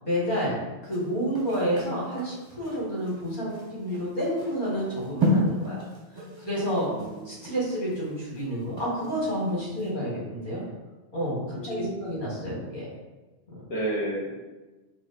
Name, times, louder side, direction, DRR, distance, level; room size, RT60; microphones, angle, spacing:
voice 1, 0.0-5.8 6.4-6.9 7.2-10.6 11.1-12.9 13.5-13.6, equal, 50° left, -6 dB, 1.6 m, -29 dB
sound 1, 0.8-9.4 9.8-9.9, equal, 25° right, 0.7 m, -32 dB
voice 2, 6.9-7.3 11.5-12.1 13.7-14.4, right 1 dB, 75° left, -6 dB, 1.0 m, -32 dB
4.5 x 2.0 x 4.0 m, 1.2 s
omnidirectional pair, 1.1 m